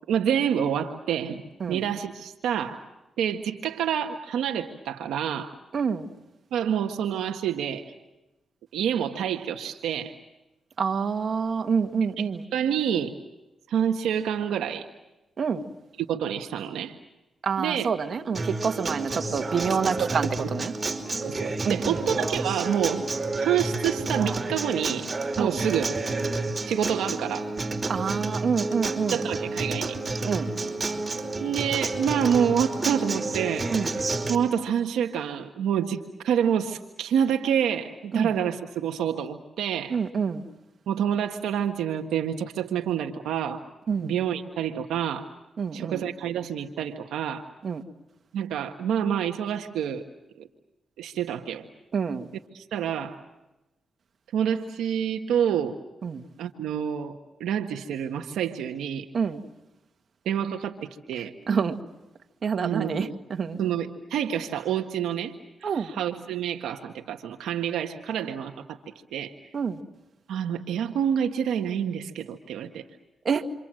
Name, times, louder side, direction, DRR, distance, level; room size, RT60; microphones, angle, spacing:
voice 1, 0.1-1.4 1.7-2.8 3.2-5.5 6.5-7.9 8.7-10.1 12.2-13.1 13.7-14.9 16.0-17.0 17.6-17.9 20.0-20.1 21.2-23.0 23.4-25.1 25.4-25.9 26.6-27.5 29.1-29.9 31.4-40.0 40.9-43.6 44.0-45.3 45.7-47.4 48.3-50.0 50.4-50.5 51.0-51.7 52.5-53.2 54.3-55.8 56.4-59.1 60.2-61.3 62.6-63.2 63.6-65.3 65.6-68.8 69.1-69.3 70.3-72.8, right 9 dB, 90° right, 1.6 m, -28 dB
voice 2, 5.7-6.1 10.8-12.4 15.4-15.6 17.4-20.7 21.6-22.0 25.4-25.6 27.9-29.2 30.2-30.5 33.7-33.9 38.1-38.3 39.9-40.4 43.9-44.1 45.6-46.0 47.6-47.8 51.9-52.3 56.0-56.2 59.1-59.4 61.5-61.8 62.4-63.6 65.6-65.9 69.5-69.8 73.3-73.5, right 6 dB, 55° right, 2.3 m, -27 dB
Acoustic guitar, 18.3-34.4, right 3 dB, 35° right, 5.1 m, -30 dB
28.5 x 26.0 x 7.8 m
cardioid pair, 60°, 0 cm